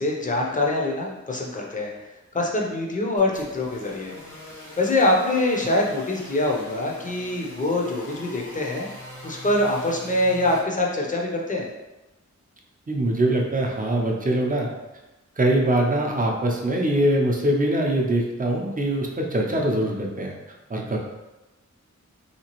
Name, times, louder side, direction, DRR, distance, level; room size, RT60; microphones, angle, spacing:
voice 1, 0.0-1.9 2.3-4.1 4.8-8.9 9.2-11.7, left 2 dB, 25° left, -1 dB, 0.6 m, -24 dB
sound 1, 3.2-10.6, equal, 85° left, 1.1 m, -42 dB
voice 2, 12.9-14.7 15.4-20.3 20.7-21.0, right 1 dB, 30° right, 0 dB, 0.6 m, -23 dB
3.3 x 2.9 x 2.9 m, 1.0 s
wide cardioid pair, 95°, 30 cm